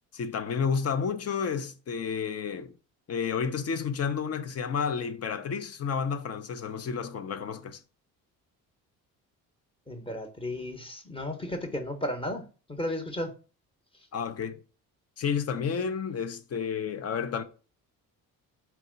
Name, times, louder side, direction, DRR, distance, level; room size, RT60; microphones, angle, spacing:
voice 1, 0.1-2.7 3.1-7.8 14.1-14.6 15.2-17.4, left 6 dB, 40° left, 0.7 m, -31 dB
voice 2, 9.9-12.5 12.8-13.3, left 1 dB, 15° left, 1.0 m, -34 dB
4.6 x 2.7 x 3.9 m
supercardioid pair, 80°, 37 cm